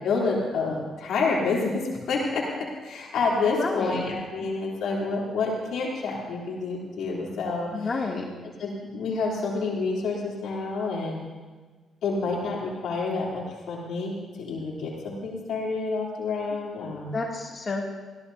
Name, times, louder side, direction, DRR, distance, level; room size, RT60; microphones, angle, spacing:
voice 1, 0.0-7.9 8.6-11.2 12.0-17.2, left 3 dB, 75° left, -4 dB, 3.4 m, -28 dB
voice 2, 3.6-4.0 7.7-8.2 16.5-16.6 17.1-17.8, left 3 dB, 35° left, -2 dB, 2.7 m, -30 dB
22.0 x 16.5 x 2.8 m, 1.4 s
cardioid pair, 90°, 0 cm